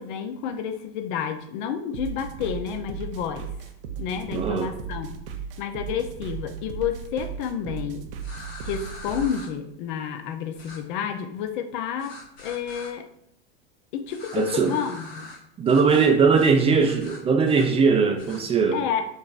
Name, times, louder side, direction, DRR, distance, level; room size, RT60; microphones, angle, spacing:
voice 1, 0.0-3.5 4.0-5.2 5.6-8.1 8.6-13.1 13.9-15.3 18.7-19.1, left 8 dB, 50° left, 8 dB, 0.6 m, -30 dB
sound 1, 1.9-9.4, right 7 dB, 65° right, 0.6 m, -36 dB
voice 2, 4.3-4.7 14.3-14.8 15.6-18.8, right 5 dB, 20° right, 4 dB, 0.4 m, -20 dB
sound 2, 8.2-9.5 10.6-10.8 12.0-12.9 14.1-15.4 15.7-16.1 16.3-16.5 16.8-17.7 18.2-18.4, left 2 dB, 80° left, 1.4 m, -43 dB
5.3 x 2.9 x 2.5 m, 0.73 s
figure-of-eight pair, 85°, 30 cm